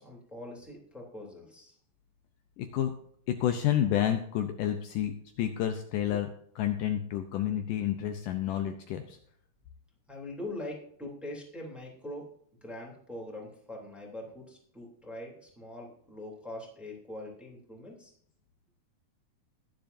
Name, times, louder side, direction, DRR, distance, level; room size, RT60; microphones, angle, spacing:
voice 1, 0.0-1.8 10.1-12.3 12.6-18.1, left 1 dB, ahead, -2 dB, 2.3 m, -43 dB
voice 2, 2.6-2.9 3.3-6.3 6.6-9.2, left 11 dB, 90° left, 6 dB, 1.8 m, -30 dB
21.0 x 7.7 x 2.7 m, 0.64 s
omnidirectional pair, 4.8 m